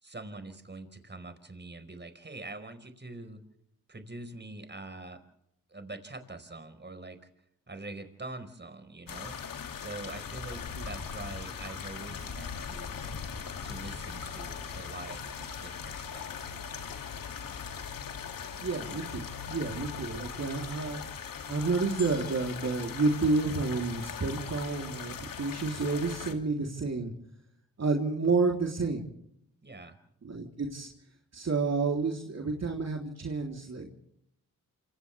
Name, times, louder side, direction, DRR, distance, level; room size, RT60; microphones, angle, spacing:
voice 1, 0.0-3.4 3.9-5.2 5.7-7.2 7.7-9.4 9.8-13.0 13.6-16.3 29.6-30.0, right 2 dB, 30° right, 9 dB, 4.8 m, -44 dB
sound 1, 9.1-26.3, left 6 dB, 70° left, 2.8 m, -40 dB
voice 2, 18.6-21.0 21.5-27.1 27.8-29.0 30.2-30.9 31.3-33.9, right 3 dB, 50° right, 1 dB, 3.6 m, -30 dB
sound 2, 22.0-24.4 25.0-25.1, left 11 dB, 50° left, 5.1 m, -51 dB
28.0 x 26.5 x 3.5 m, 0.73 s
supercardioid pair, 50°, 34 cm